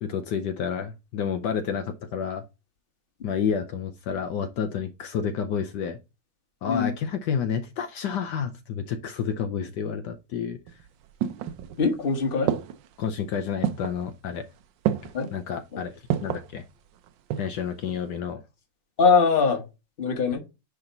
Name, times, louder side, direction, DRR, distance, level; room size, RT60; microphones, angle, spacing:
voice 1, 0.0-2.4 3.2-6.0 6.6-10.6 13.0-14.4 15.3-15.9 16.2-16.6 17.4-18.4, left 7 dB, 70° left, 7 dB, 1.3 m, -30 dB
sound 1, 10.7-12.0 12.5-13.0 13.6-14.0 14.8-15.3 16.1-16.5 17.0-17.6 17.9-18.0, right 10 dB, 85° right, 1.4 m, -28 dB
voice 2, 11.8-12.5 15.1-15.3 15.7-15.8 19.0-19.6 20.0-20.4, left 5 dB, 35° left, 5 dB, 1.3 m, -22 dB
9.7 x 3.5 x 3.9 m, 0.27 s
omnidirectional pair, 2.0 m